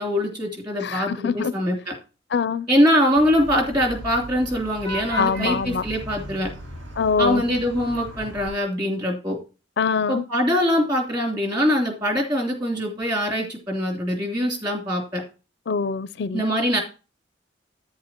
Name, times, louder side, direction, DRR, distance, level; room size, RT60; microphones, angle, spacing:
voice 1, 0.0-1.9 2.7-6.5 7.2-9.4 10.1-15.2 16.3-16.8, equal, 25° right, 3.0 m, -23 dB
voice 2, 0.8-1.5 2.3-2.7 5.2-5.8 7.0-7.4 9.8-10.2 15.7-16.5, left 5 dB, 60° left, 0.4 m, -24 dB
Vehicle horn car horn honking / Traffic noise roadway noise, 3.2-8.5, equal, 80° right, 1.8 m, -37 dB
10.5 x 9.2 x 2.9 m
head